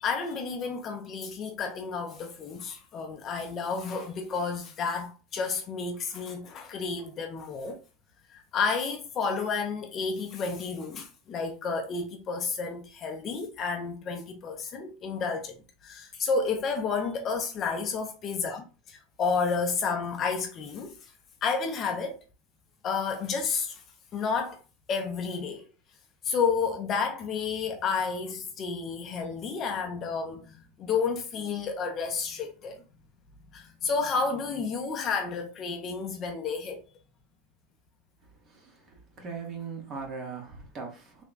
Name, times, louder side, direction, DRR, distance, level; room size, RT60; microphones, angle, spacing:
voice 1, 0.0-7.8 8.3-15.5 15.8-21.1 21.4-22.2 22.8-23.8 24.1-24.6 24.9-25.6 26.2-32.8 33.5-36.8, left 5 dB, 30° left, 0.5 m, -31 dB
voice 2, 38.4-41.2, right 5 dB, 25° right, 0.9 m, -40 dB
3.3 x 2.1 x 3.9 m
supercardioid pair, 165°, 0 cm